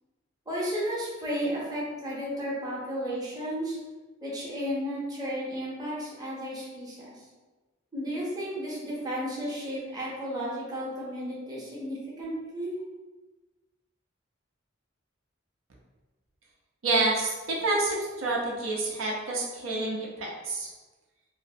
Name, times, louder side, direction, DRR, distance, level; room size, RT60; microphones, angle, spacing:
voice 1, 0.5-3.8 4.2-7.2 7.9-12.7, equal, 20° right, -6 dB, 0.6 m, -33 dB
voice 2, 16.8-20.7, right 2 dB, 85° right, -3 dB, 0.5 m, -28 dB
2.5 x 2.0 x 2.5 m, 1.2 s
head